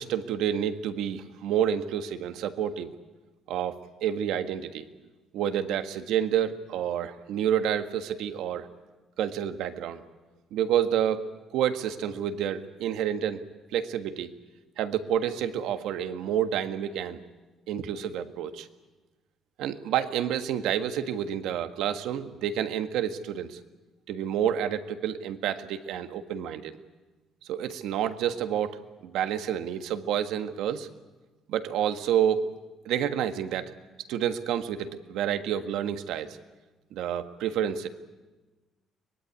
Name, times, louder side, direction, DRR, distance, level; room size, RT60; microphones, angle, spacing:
voice 1, 0.0-2.9 3.5-4.9 5.3-8.7 9.2-10.0 10.5-11.2 11.5-13.4 13.7-14.3 14.8-17.2 17.7-18.7 19.6-23.6 24.1-26.7 27.5-30.9 31.5-32.4 32.8-33.7 34.1-36.4 36.9-37.9, right 9 dB, 80° right, 8 dB, 1.5 m, -29 dB
23.5 x 20.0 x 9.7 m, 1.2 s
cardioid pair, 115°, 0 cm